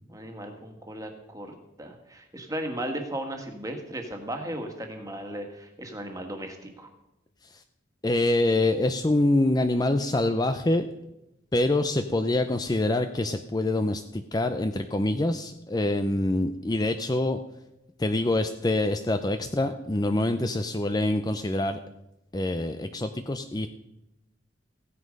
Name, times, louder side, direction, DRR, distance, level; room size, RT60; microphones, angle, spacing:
voice 1, 0.1-6.9, right 1 dB, 20° right, 4 dB, 1.8 m, -36 dB
voice 2, 8.0-10.9 11.5-17.4 18.0-21.8 22.3-23.7, left 2 dB, 20° left, 8 dB, 0.5 m, -25 dB
15.5 x 9.8 x 5.3 m, 0.89 s
head